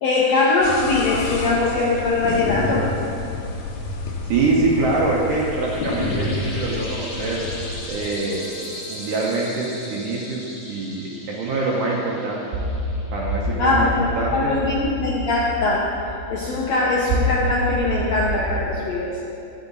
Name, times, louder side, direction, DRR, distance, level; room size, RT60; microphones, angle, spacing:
voice 1, 0.0-2.9 13.6-14.1 14.3-15.9 16.3-19.1, left 3 dB, 70° left, -4 dB, 1.7 m, -21 dB
sound 1, 0.6-7.9, left 3 dB, 90° left, 2.8 m, -29 dB
voice 2, 4.3-7.4 7.9-8.6 8.9-10.4 10.7-12.4 13.1-14.5, right 3 dB, 70° right, -4 dB, 2.6 m, -24 dB
sound 2, 4.6-13.7, left 1 dB, 50° left, 1.2 m, -38 dB
sound 3, 12.5-18.7, equal, 85° right, 3.3 m, -27 dB
11.0 x 8.7 x 4.0 m, 2.9 s
omnidirectional pair, 4.0 m